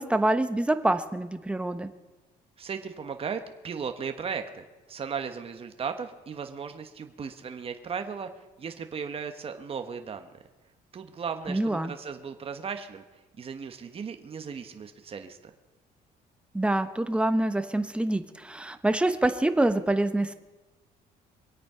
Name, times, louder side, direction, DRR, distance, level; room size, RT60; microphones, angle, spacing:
voice 1, 0.0-1.9 11.5-11.9 16.5-20.3, right 1 dB, 5° right, 9 dB, 1.0 m, -26 dB
voice 2, 2.6-10.3 10.9-15.5, right 6 dB, 35° right, 7 dB, 1.2 m, -36 dB
23.5 x 8.6 x 5.6 m, 1.1 s
cardioid pair, 110°, 17 cm